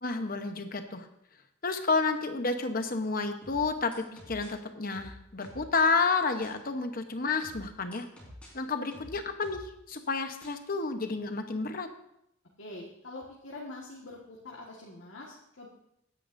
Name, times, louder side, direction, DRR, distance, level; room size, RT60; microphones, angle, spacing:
voice 1, 0.0-1.1 1.6-8.1 8.5-11.9, left 4 dB, 45° left, 7 dB, 0.9 m, -30 dB
sound 1, 3.4-4.5 4.9-5.7 6.4-6.5 7.4-8.5 8.9-9.9 10.4-10.5, left 1 dB, 5° left, 3.9 m, -48 dB
voice 2, 12.6-15.7, left 2 dB, 70° left, -3 dB, 1.6 m, -44 dB
16.5 x 9.8 x 2.6 m, 0.79 s
head